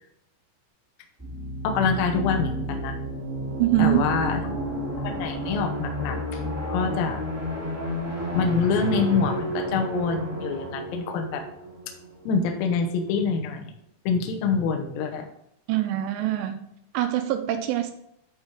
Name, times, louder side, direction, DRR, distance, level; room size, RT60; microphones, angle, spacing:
sound 1, 1.2-12.7, equal, 15° right, 0.5 m, -32 dB
voice 1, 1.6-3.0 3.8-4.4 5.0-6.4 6.7-7.2 8.3-11.4 12.3-13.7 14.1-15.3, left 5 dB, 75° left, 3 dB, 2.2 m, -25 dB
voice 2, 3.6-4.0 15.7-16.7 16.9-17.9, right 14 dB, 85° right, 7 dB, 2.7 m, -24 dB
11.0 x 4.6 x 3.6 m, 0.75 s
omnidirectional pair, 5.4 m